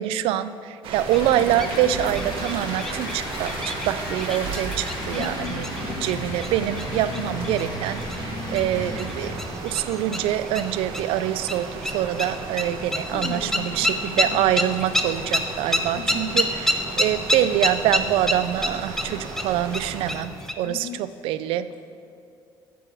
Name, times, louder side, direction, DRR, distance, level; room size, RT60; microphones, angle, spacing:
voice 1, 0.0-5.7 6.0-9.3 9.6-16.7 17.0-21.7, right 12 dB, 85° right, 14 dB, 0.4 m, -25 dB
sound 1, 0.8-20.1, right 4 dB, 70° right, 1.0 m, -35 dB
sound 2, 1.0-20.5, left 1 dB, 5° left, 0.5 m, -30 dB
sound 3, 1.1-9.6, left 2 dB, 50° left, 1.5 m, -35 dB
voice 2, 5.1-6.3 7.1-7.5 13.0-14.8 15.9-16.5 20.6-21.8, left 8 dB, 75° left, 3 dB, 0.5 m, -38 dB
9.0 x 4.8 x 6.1 m, 2.5 s
cardioid pair, 120°, 9 cm